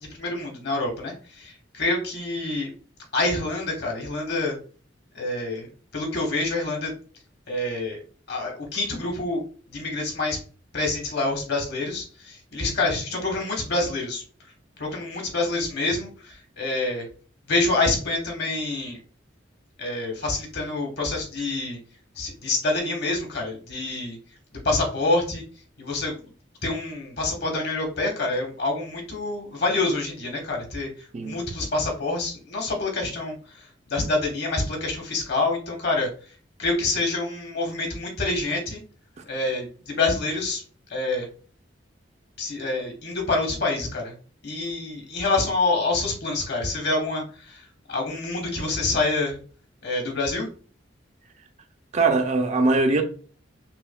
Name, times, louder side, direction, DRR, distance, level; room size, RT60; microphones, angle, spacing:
voice 1, 0.1-2.7 3.1-4.5 5.1-6.9 7.5-8.0 8.3-9.4 9.7-10.4 10.7-14.2 14.8-17.0 17.5-19.0 19.8-21.8 22.2-24.2 24.6-25.4 25.8-26.2 26.6-30.9 31.2-33.4 33.9-36.1 36.6-38.8 39.3-40.6 40.9-41.3 42.4-44.1 44.4-47.6 47.9-49.4 49.8-50.5, left 2 dB, 60° left, 1.1 m, -27 dB
voice 2, 51.9-53.0, right 3 dB, 35° right, 0.4 m, -21 dB
5.6 x 2.2 x 2.2 m
head